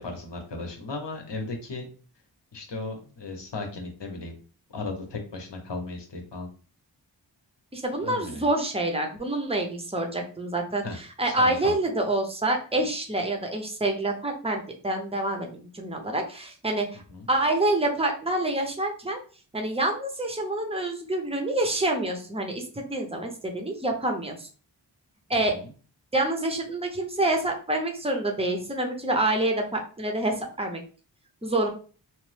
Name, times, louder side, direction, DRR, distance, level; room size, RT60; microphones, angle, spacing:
voice 1, 0.0-1.9 2.5-4.4 4.7-6.5 8.0-8.5 10.8-11.0 11.3-11.7 17.1-17.3 25.3-25.7, left 3 dB, 70° left, 3 dB, 0.9 m, -36 dB
voice 2, 7.7-17.0 17.3-19.2 19.5-24.5 25.3-25.5 26.1-30.8 31.4-31.7, right 2 dB, 15° right, 2 dB, 0.6 m, -27 dB
3.0 x 2.0 x 3.2 m, 0.39 s
wide cardioid pair, 60°, 44 cm